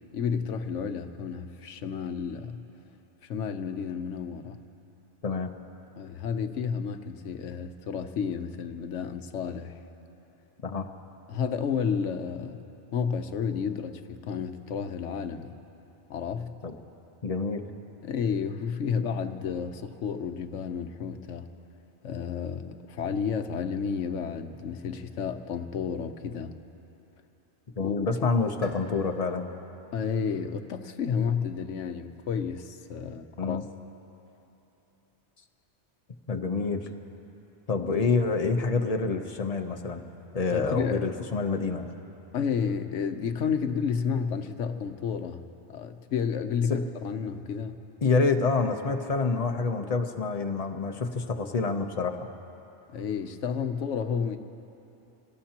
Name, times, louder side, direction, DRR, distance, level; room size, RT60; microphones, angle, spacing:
voice 1, 0.1-2.6 3.2-4.6 6.0-9.8 11.3-12.7 12.9-15.5 16.1-16.5 18.0-21.5 22.0-26.5 27.8-27.9 28.2-28.3 29.9-33.6 40.5-41.0 42.3-47.8 52.9-54.4, left 6 dB, 85° left, 8 dB, 1.1 m, -31 dB
voice 2, 5.2-5.5 10.6-10.9 16.6-16.7 17.2-17.6 27.8-29.5 33.4-33.6 36.3-36.9 37.7-40.0 40.3-41.9 46.7-46.8 48.0-52.2, left 4 dB, 35° left, 5 dB, 0.8 m, -27 dB
Bowed string instrument, 28.6-32.1, equal, 85° right, 2.6 m, -49 dB
27.0 x 18.0 x 2.9 m, 3.0 s
omnidirectional pair, 1.2 m